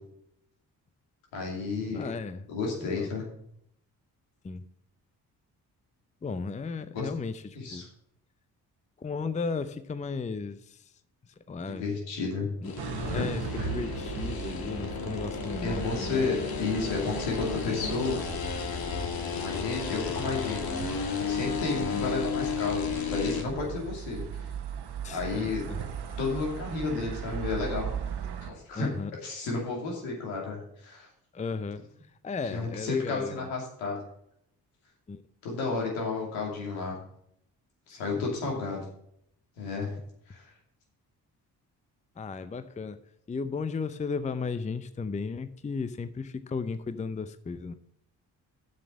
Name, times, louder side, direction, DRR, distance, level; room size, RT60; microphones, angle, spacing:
voice 1, 1.3-2.1 2.5-3.2 6.9-7.1 7.5-7.9 11.7-12.5 13.1-13.3 13.6-13.7 15.6-18.2 19.3-20.8 21.2-24.5 25.1-25.7 26.2-27.9 28.4-28.9 29.2-31.1 32.5-34.0 35.4-36.9 37.9-38.8 39.6-39.9 40.3-40.5, left 4 dB, 75° left, -1 dB, 2.6 m, -32 dB
voice 2, 1.9-2.4 2.8-3.1 4.4-4.6 6.2-7.8 9.0-10.8 11.5-11.9 12.6-12.7 13.0-16.2 21.9-22.1 25.0-25.8 28.7-29.1 31.3-31.9 32.2-33.5 35.1-35.2 37.9-38.0 42.2-43.0 43.3-47.7, left 4 dB, 15° left, 13 dB, 0.6 m, -35 dB
sound 1, 12.6-23.4, left 6 dB, 50° left, 1.6 m, -33 dB
sound 2, 12.8-28.5, right 7 dB, 55° right, 1.3 m, -38 dB
7.4 x 6.5 x 7.0 m, 0.73 s
hypercardioid pair, 40°, 47 cm